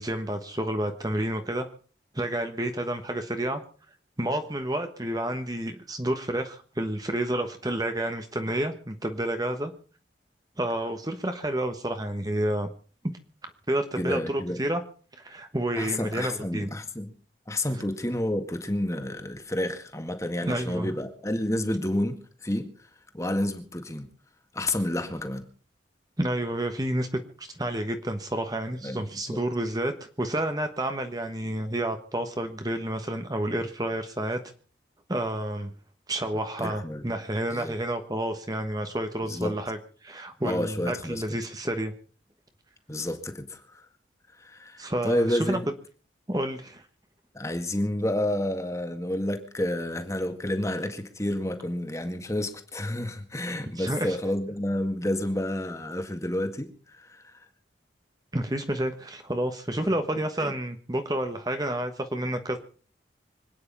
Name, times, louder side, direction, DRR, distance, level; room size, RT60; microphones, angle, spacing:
voice 1, 0.0-1.7 2.1-3.6 4.2-9.7 10.6-12.7 13.7-14.8 15.2-16.7 20.5-20.9 26.2-34.4 35.1-35.7 36.1-41.9 44.8-45.6 46.3-46.8 53.8-54.2 58.3-62.6, right 1 dB, 20° right, 7 dB, 1.3 m, -30 dB
voice 2, 14.0-14.6 15.8-17.1 17.5-22.9 23.1-24.0 24.5-25.4 28.8-29.0 29.3-29.4 36.6-37.0 37.5-37.7 39.2-39.5 40.4-41.2 42.9-43.9 44.4-45.6 47.3-57.5 59.8-59.9 60.4-60.5, left 1 dB, 15° left, 7 dB, 1.9 m, -30 dB
25.5 x 9.7 x 5.5 m, 0.40 s
head